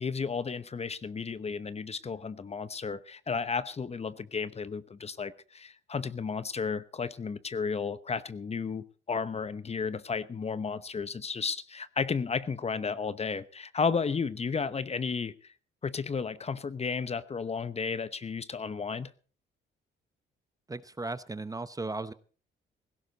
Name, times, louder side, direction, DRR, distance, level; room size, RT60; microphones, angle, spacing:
voice 1, 0.0-15.5 15.8-19.1, left 5 dB, 30° left, 15 dB, 0.9 m, -33 dB
voice 2, 20.7-22.1, right 3 dB, 15° right, 14 dB, 0.8 m, -36 dB
17.5 x 16.0 x 4.0 m, 0.40 s
cardioid pair, 90°, 20 cm